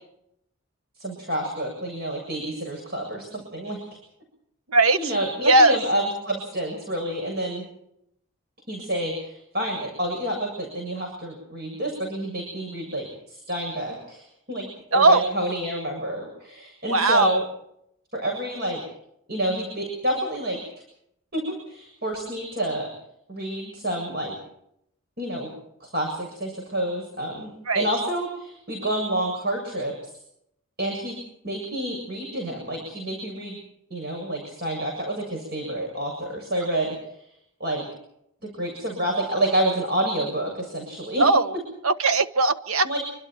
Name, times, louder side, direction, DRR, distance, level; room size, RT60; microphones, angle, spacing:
voice 1, 1.0-3.8 5.0-7.6 8.7-17.4 18.1-18.8 19.3-20.6 21.3-22.9 23.3-24.4 25.2-25.5 25.8-30.1 30.8-31.2 31.4-33.6 33.9-36.9 37.6-37.8 38.4-41.2 42.8-43.0, right 1 dB, 45° right, 1 dB, 7.4 m, -28 dB
voice 2, 4.7-5.1 5.4-5.8 14.9-15.3 16.9-17.4 27.7-27.9 41.2-41.5 41.8-43.0, right 2 dB, 85° right, 11 dB, 1.3 m, -19 dB
27.0 x 25.0 x 4.6 m, 0.75 s
head